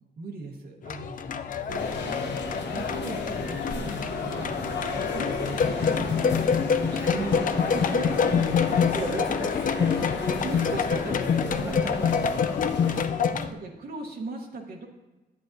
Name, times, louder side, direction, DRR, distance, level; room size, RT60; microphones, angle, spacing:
voice 1, 0.2-1.5 1.8-4.6 5.1-6.2 6.7-7.5 7.7-8.9 10.4-12.1 13.3-14.9, right 3 dB, 60° right, 1 dB, 1.0 m, -38 dB
sound 1, 0.8-13.5, left 6 dB, 50° left, 0.4 m, -27 dB
voice 2, 1.4-1.9 4.9-5.2 7.0-7.3 8.0-8.1 8.4-9.9 11.6-12.0 12.8-13.3, right 1 dB, 15° right, 1 dB, 1.3 m, -37 dB
sound 2, 1.7-13.0, left 3 dB, 90° left, 1.0 m, -33 dB
10.0 x 8.5 x 2.6 m, 1.1 s
cardioid pair, 115°, 18 cm